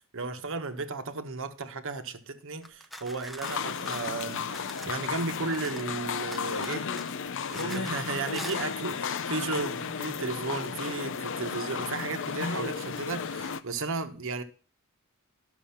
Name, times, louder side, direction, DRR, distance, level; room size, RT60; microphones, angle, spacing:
voice 1, 0.1-4.5 4.8-6.9 7.5-14.4, right 3 dB, 60° right, 1.1 m, -34 dB
sound 1, 2.6-6.0 6.3-8.0 8.3-8.6, equal, ahead, 0.6 m, -44 dB
sound 2, 3.4-13.6, left 6 dB, 60° left, 0.6 m, -34 dB
11.5 x 6.6 x 5.7 m
head